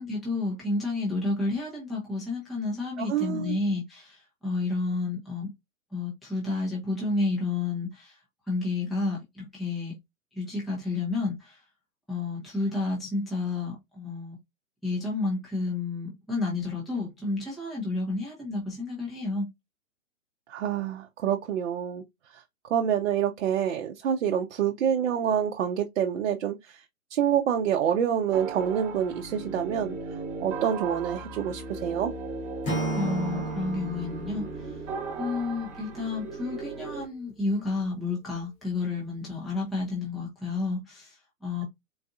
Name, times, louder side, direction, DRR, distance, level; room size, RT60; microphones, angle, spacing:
voice 1, 0.0-5.5 5.9-8.2 8.5-9.9 10.3-11.6 12.1-14.4 14.8-19.5 32.9-34.8 35.1-41.6, left 3 dB, ahead, 0.4 m, -31 dB
voice 2, 3.0-3.5 20.5-22.0 22.3-26.8 27.1-30.0 30.4-32.1, right 9 dB, 60° right, 0.6 m, -27 dB
sound 1, 28.3-37.0, right 4 dB, 20° right, 0.9 m, -37 dB
Acoustic guitar / Strum, 32.6-35.7, right 1 dB, 15° left, 0.8 m, -33 dB
3.9 x 2.5 x 2.3 m
hypercardioid pair, 130°, 40 cm